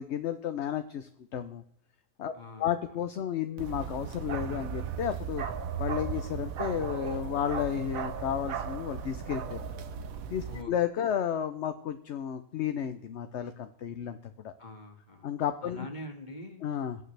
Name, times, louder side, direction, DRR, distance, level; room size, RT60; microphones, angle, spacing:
voice 1, 0.0-1.6 2.2-2.3 2.6-5.5 5.8-9.6 10.3-14.5 15.2-15.9 16.6-17.0, left 9 dB, 60° left, 9 dB, 0.9 m, -32 dB
voice 2, 2.3-2.7 10.5-10.7 14.6-15.3 15.6-16.7, left 1 dB, 30° left, 3 dB, 2.1 m, -44 dB
Bark, 3.6-10.6, right 6 dB, 70° right, 1.3 m, -36 dB
22.0 x 8.8 x 3.3 m, 0.73 s
omnidirectional pair, 1.5 m